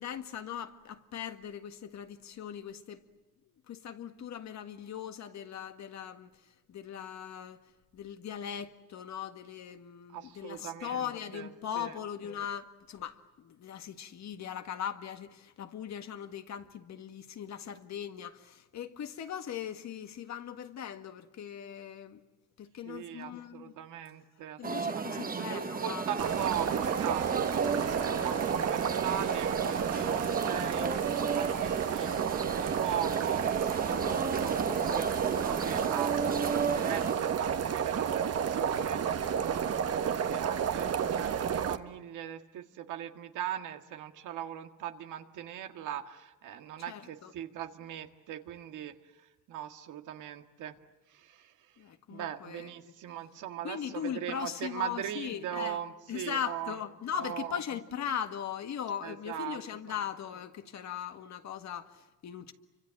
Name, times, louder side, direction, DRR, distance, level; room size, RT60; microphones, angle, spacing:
voice 1, 0.0-3.0 3.7-6.3 6.7-7.6 7.9-22.2 22.6-23.8 24.6-26.3 28.0-28.3 46.9-47.3 51.8-52.9 53.6-55.8 56.1-62.5, left 8 dB, 65° left, 1.8 m, -39 dB
voice 2, 10.1-12.0 22.8-32.1 32.4-50.8 51.1-51.8 52.1-56.8 57.2-57.6 59.0-59.6, right 10 dB, 85° right, 1.9 m, -40 dB
sound 1, 24.6-37.1, right 5 dB, 30° right, 1.3 m, -34 dB
sound 2, 26.2-41.8, right 7 dB, 55° right, 1.4 m, -31 dB
29.0 x 25.0 x 7.7 m
cardioid pair, 90°, 30 cm